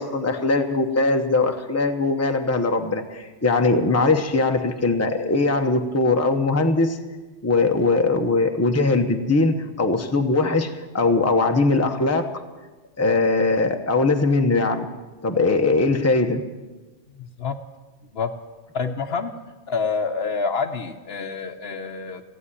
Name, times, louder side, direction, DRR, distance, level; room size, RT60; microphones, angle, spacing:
voice 1, 0.0-7.0 7.4-12.3 13.0-14.9 15.2-16.4, left 3 dB, 15° left, 5 dB, 0.8 m, -21 dB
voice 2, 17.2-17.6 18.1-18.3 18.7-19.3 19.7-22.2, left 5 dB, 60° left, 8 dB, 1.0 m, -27 dB
15.5 x 8.8 x 9.8 m, 1.2 s
omnidirectional pair, 1.2 m